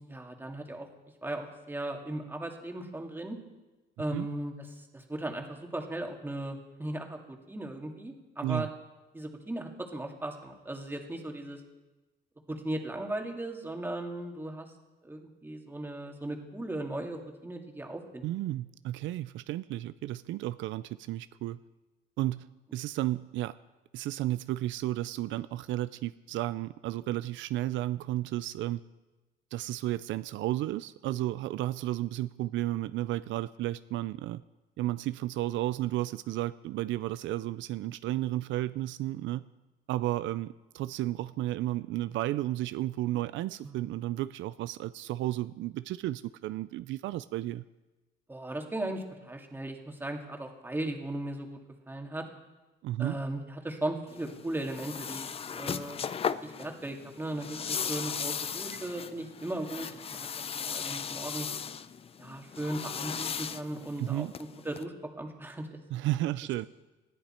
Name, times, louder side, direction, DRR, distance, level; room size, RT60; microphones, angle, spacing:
voice 1, 0.1-0.9 1.2-3.4 4.0-4.5 4.9-8.7 9.1-11.6 12.5-14.7 15.0-18.2 43.6-43.8 48.3-51.6 51.9-52.2 53.0-56.0 56.4-60.3 60.6-61.5 62.2-65.8, right 1 dB, 10° right, 2 dB, 2.1 m, -37 dB
voice 2, 18.2-21.6 22.2-22.5 22.7-23.6 23.9-28.8 29.5-34.4 34.8-39.4 39.9-47.6 52.8-53.2 64.0-64.3 65.9-66.7, right 15 dB, 80° right, 14 dB, 0.4 m, -33 dB
sound 1, 54.1-64.8, left 7 dB, 30° left, 0.5 m, -37 dB
19.5 x 13.5 x 4.4 m, 1.1 s
cardioid pair, 120°, 19 cm